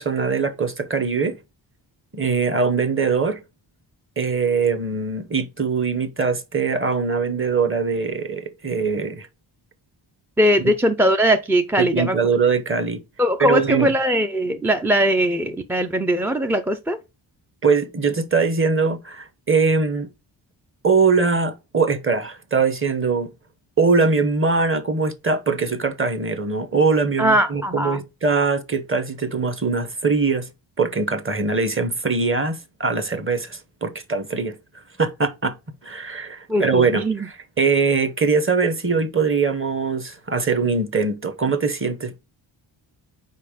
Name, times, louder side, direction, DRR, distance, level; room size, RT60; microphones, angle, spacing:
voice 1, 0.0-1.4 2.1-3.4 4.2-9.3 11.8-13.0 13.4-13.9 17.6-20.1 20.8-23.3 23.8-30.5 30.8-34.5 35.0-35.5 35.8-42.2, right 4 dB, 25° right, 0.9 m, -22 dB
voice 2, 10.4-12.2 13.2-17.0 27.2-28.0 36.5-37.3, equal, 5° right, 0.3 m, -20 dB
5.4 x 4.7 x 5.0 m
wide cardioid pair, 145°, 46 cm